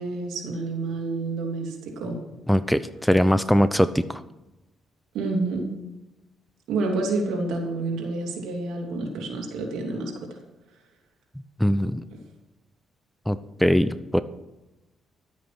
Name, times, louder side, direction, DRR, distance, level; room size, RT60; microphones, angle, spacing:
voice 1, 0.0-2.2 5.1-5.7 6.7-10.1, right 3 dB, 85° right, 1 dB, 3.0 m, -28 dB
voice 2, 2.5-4.2 11.6-12.0 13.3-14.2, equal, 5° left, 14 dB, 0.6 m, -21 dB
12.0 x 8.4 x 5.9 m, 1.0 s
cardioid pair, 90°, 0 cm